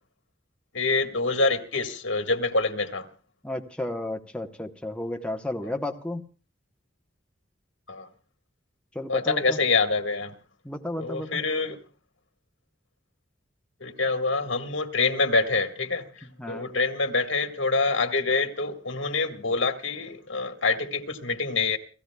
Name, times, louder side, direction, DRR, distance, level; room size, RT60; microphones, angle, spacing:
voice 1, 0.7-3.1 7.9-8.1 9.1-10.3 11.0-11.8 13.8-16.0 16.5-21.8, left 3 dB, 85° left, 1.7 m, -26 dB
voice 2, 3.4-6.2 8.9-9.6 10.6-11.4 16.4-16.7, left 1 dB, 5° left, 1.0 m, -33 dB
30.0 x 15.0 x 2.3 m
head